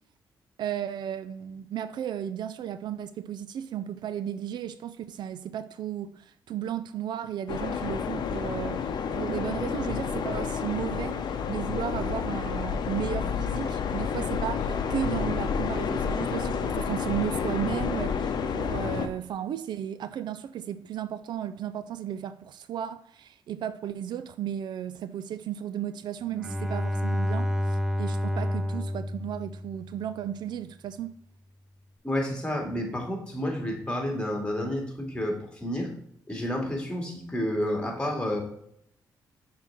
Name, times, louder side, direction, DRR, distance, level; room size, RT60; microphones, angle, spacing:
voice 1, 0.6-31.1, right 10 dB, 70° right, 0.4 m, -34 dB
sound 1, 7.5-19.1, left 6 dB, 65° left, 0.7 m, -30 dB
Bowed string instrument, 26.3-30.1, left 1 dB, 5° right, 0.5 m, -29 dB
voice 2, 32.0-35.9 36.3-38.4, left 1 dB, 15° left, 2.2 m, -30 dB
6.2 x 3.7 x 5.8 m
cardioid pair, 70°, 8 cm